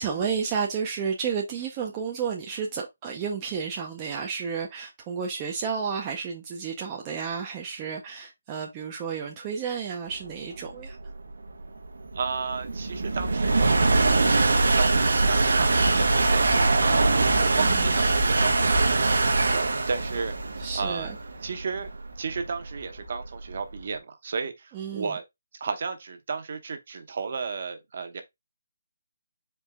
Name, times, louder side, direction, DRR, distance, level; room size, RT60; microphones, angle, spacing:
voice 1, 0.0-11.0 17.6-18.0 20.6-21.2 24.7-25.1, right 6 dB, 15° right, 0.5 m, -31 dB
sound 1, 10.4-23.8, right 3 dB, 75° right, 1.0 m, -23 dB
voice 2, 12.1-21.1 21.4-21.9 22.2-25.2 25.5-28.2, right 5 dB, 40° right, 0.8 m, -33 dB
4.5 x 3.1 x 3.4 m
hypercardioid pair, 175°, 0 cm